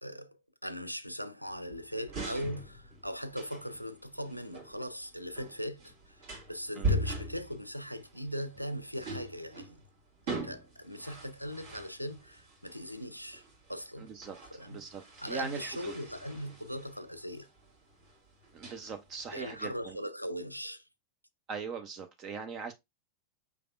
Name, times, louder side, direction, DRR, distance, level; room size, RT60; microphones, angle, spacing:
voice 1, 0.0-9.8 10.3-13.4 13.7-14.1 14.5-14.8 15.2-17.5 19.3-20.9, equal, 90° left, 0.4 m, -40 dB
sound 1, 1.5-19.9, right 1 dB, 50° right, 1.8 m, -41 dB
voice 2, 14.0-14.4 14.7-15.0 15.3-15.9 18.5-20.0 21.5-22.7, right 5 dB, 30° right, 0.5 m, -40 dB
5.1 x 3.3 x 2.3 m
figure-of-eight pair, 90°, 0 cm